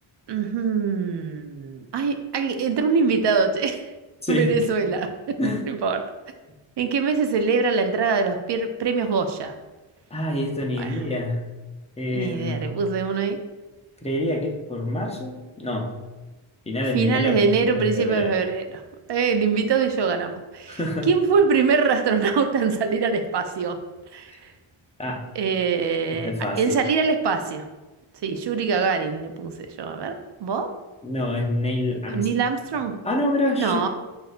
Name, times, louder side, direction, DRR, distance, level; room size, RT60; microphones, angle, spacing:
voice 1, 0.3-3.9 4.3-5.1 5.6-6.0 6.8-9.5 10.8-11.0 12.1-13.4 16.9-18.8 19.1-23.8 24.1-24.5 25.3-27.7 28.2-30.1 30.4-30.7 32.1-32.9 33.6-33.9, right 5 dB, 60° right, 7 dB, 0.5 m, -23 dB
voice 2, 10.1-11.4 12.0-12.7 14.0-15.9 16.7-17.3 17.7-18.3 20.7-21.1 25.0-25.2 26.1-26.8 31.0-32.3 33.0-33.9, left 1 dB, 15° left, 0 dB, 0.5 m, -26 dB
5.9 x 2.6 x 2.5 m, 1.2 s
wide cardioid pair, 110°, 49 cm